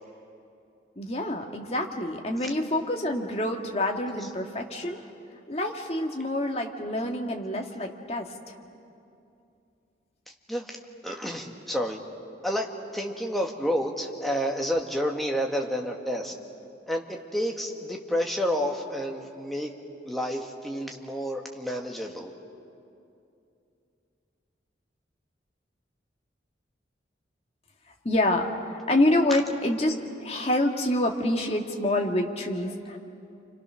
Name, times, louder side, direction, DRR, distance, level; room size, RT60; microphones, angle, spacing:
voice 1, 1.0-5.0 5.5-8.5 28.0-33.0, left 1 dB, 35° left, 2 dB, 1.9 m, -27 dB
voice 2, 11.0-12.0 12.4-16.3 16.9-19.7 20.1-22.3, equal, ahead, 1 dB, 1.7 m, -30 dB
29.5 x 25.5 x 6.3 m, 2.6 s
head